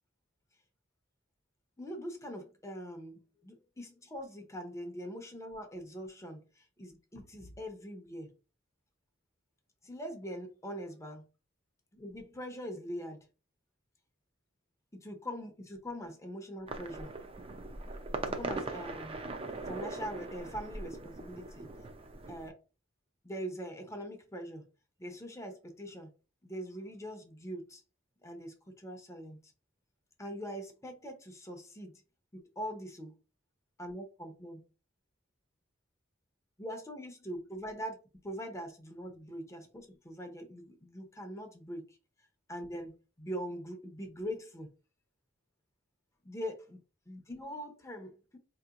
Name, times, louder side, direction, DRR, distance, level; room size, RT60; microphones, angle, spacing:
voice 1, 1.8-8.3 9.8-11.3 11.9-13.2 14.9-17.1 18.2-19.2 19.7-21.7 22.3-22.6 23.2-24.7 25.0-26.1 26.4-27.8 28.2-29.5 30.2-31.9 32.3-33.1 33.8-34.6 36.6-38.0 38.2-42.0 42.5-44.7 46.2-46.8 47.1-48.4, equal, 15° left, 0.6 m, -42 dB
sound 1, 16.7-22.5, right 3 dB, 30° right, 0.5 m, -40 dB
4.2 x 2.8 x 2.4 m
head